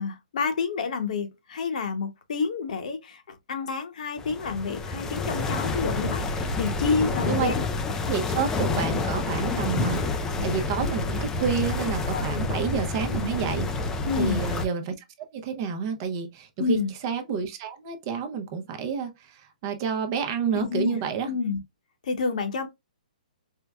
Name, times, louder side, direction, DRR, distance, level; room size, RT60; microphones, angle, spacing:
voice 1, 0.0-7.6 12.1-12.4 14.0-14.4 16.6-16.9 20.5-21.0 21.3-21.6 22.0-22.7, left 5 dB, 60° left, 0.9 m, -29 dB
sound 1, 4.2-14.7, left 3 dB, 10° left, 0.4 m, -28 dB
voice 2, 8.0-13.7 14.2-16.8 17.0-21.3, right 6 dB, 30° right, 0.6 m, -29 dB
4.5 x 2.1 x 2.3 m
hypercardioid pair, 160°, 4 cm